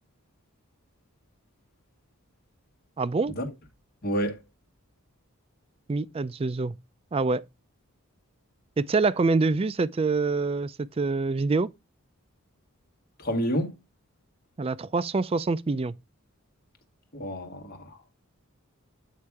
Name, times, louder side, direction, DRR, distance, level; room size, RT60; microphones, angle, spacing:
voice 1, 3.0-3.3 5.9-6.7 7.1-7.4 8.8-11.7 14.6-15.9, right 3 dB, 25° right, 0.3 m, -25 dB
voice 2, 4.0-4.4 13.2-13.8 17.1-18.0, equal, 45° left, 1.7 m, -29 dB
8.5 x 3.2 x 4.7 m
head